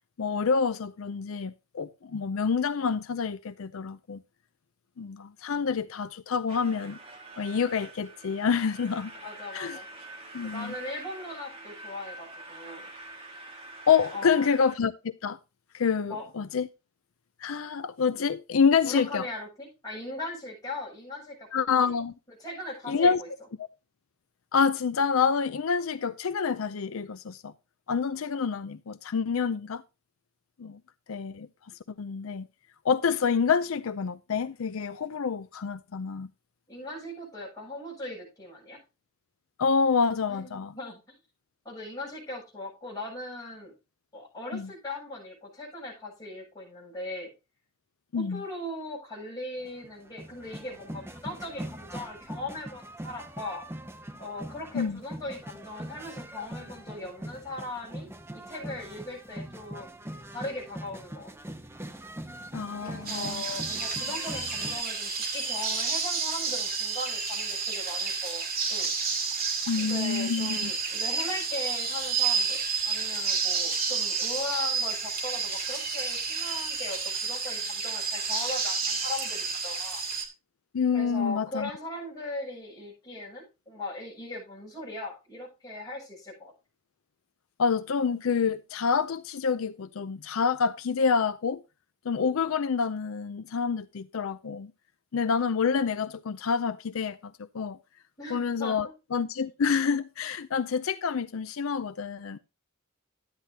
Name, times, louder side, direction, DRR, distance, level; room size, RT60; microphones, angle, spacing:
voice 1, 0.2-4.2 5.0-7.0 7.4-9.1 9.5-9.8 10.3-10.7 13.9-15.4 15.7-16.7 17.4-19.3 21.5-22.1 22.9-23.2 24.5-27.5 27.9-29.8 30.6-30.8 31.1-31.5 32.0-32.5 32.8-36.3 39.6-40.7 44.5-44.7 48.1-48.4 54.7-55.0 62.5-63.4 69.7-70.7 80.7-81.7 87.6-91.6 92.0-94.7 95.1-97.8 98.3-102.4, left 6 dB, 75° left, 0.5 m, -27 dB
sound 1, 6.5-14.8, right 2 dB, 30° right, 1.9 m, -45 dB
voice 2, 9.2-9.9 10.4-12.9 14.1-14.5 16.0-16.3 18.8-21.5 21.8-22.0 22.4-23.3 36.7-38.8 40.3-41.2 41.6-43.7 44.1-47.3 48.2-53.6 54.2-58.1 58.3-59.9 60.3-61.3 62.8-68.4 68.7-68.9 69.8-72.6 72.8-80.0 80.9-86.5 98.2-98.9, left 2 dB, 20° left, 7.3 m, -39 dB
sound 2, 49.6-64.8, right 1 dB, 10° right, 0.8 m, -42 dB
sound 3, 63.0-80.2, right 5 dB, 45° right, 2.4 m, -30 dB
12.0 x 9.7 x 2.8 m
head